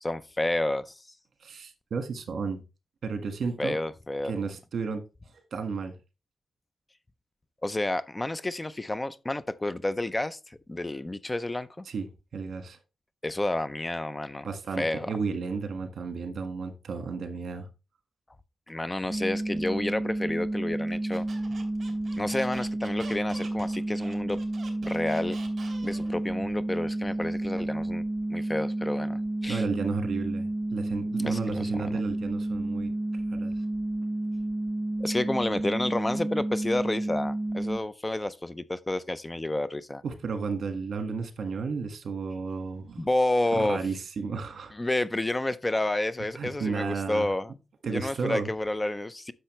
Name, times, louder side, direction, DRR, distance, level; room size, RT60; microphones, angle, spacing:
voice 1, 0.0-1.0 3.6-4.4 7.6-11.8 13.2-14.5 14.8-15.1 18.7-21.2 22.2-24.4 24.8-25.4 25.8-28.0 28.3-29.7 31.2-32.0 35.0-40.0 43.0-43.8 44.7-47.5 47.9-49.3, left 1 dB, 15° left, 0.4 m, -30 dB
voice 2, 1.4-2.6 3.0-3.8 4.3-5.0 5.5-5.9 11.9-12.0 12.3-12.8 14.4-17.7 29.5-32.9 33.3-33.5 40.0-43.1 43.5-44.7 46.4-47.3 47.8-48.5, right 5 dB, 70° right, 1.5 m, -33 dB
sound 1, 19.1-37.8, right 1 dB, 15° right, 0.9 m, -31 dB
Squeak, 21.1-26.2, right 3 dB, 50° right, 2.8 m, -47 dB
10.0 x 6.7 x 3.1 m
wide cardioid pair, 130°, 0 cm